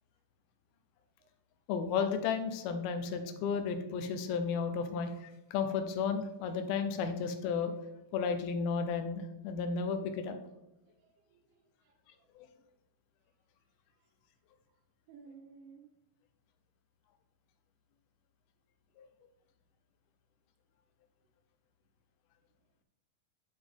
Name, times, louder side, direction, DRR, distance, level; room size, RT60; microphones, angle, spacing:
voice 1, 1.7-7.7 8.1-10.4 12.4-12.5 19.0-19.1, left 5 dB, 85° left, 7 dB, 2.6 m, -33 dB
voice 2, 11.0-12.3 15.1-15.8, right 5 dB, 70° right, 2 dB, 2.7 m, -56 dB
10.0 x 5.1 x 3.5 m, 0.90 s
omnidirectional pair, 4.4 m